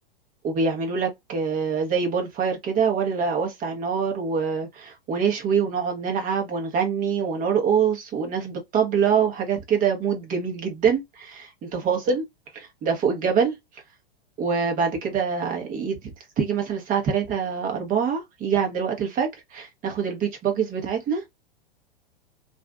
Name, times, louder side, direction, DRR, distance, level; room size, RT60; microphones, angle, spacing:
voice 1, 0.4-12.2 12.5-13.6 14.4-21.2, right 6 dB, 30° right, 1.1 m, -25 dB
3.1 x 2.6 x 2.3 m
figure-of-eight pair, 105°, 29 cm